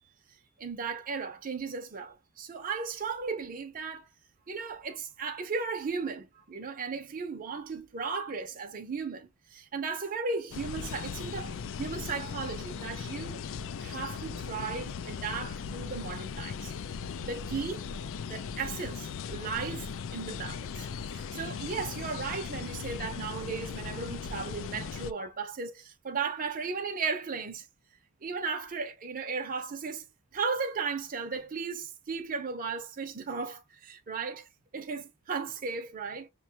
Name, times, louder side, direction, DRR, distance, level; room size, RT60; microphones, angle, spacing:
voice 1, 0.3-4.1 4.5-13.5 13.8-16.7 17.2-17.8 18.2-27.7 28.2-30.1 30.3-36.3, right 5 dB, 40° right, 0.6 m, -36 dB
sound 1, 10.5-25.1, left 6 dB, 60° left, 0.4 m, -38 dB
6.0 x 2.2 x 2.8 m
head